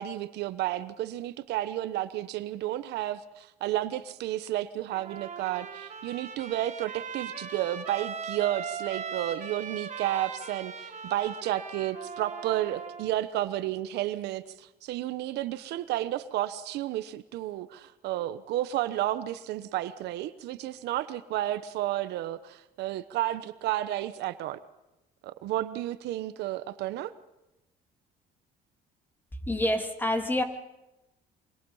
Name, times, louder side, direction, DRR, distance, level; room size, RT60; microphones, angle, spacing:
voice 1, 0.0-24.6 25.2-27.1, right 14 dB, 80° right, 13 dB, 1.1 m, -32 dB
Trumpet, 4.9-13.1, right 6 dB, 45° right, 4.2 m, -39 dB
voice 2, 29.5-30.4, left 1 dB, 10° left, 5 dB, 2.8 m, -27 dB
25.5 x 24.5 x 5.6 m, 0.95 s
cardioid pair, 110°, 17 cm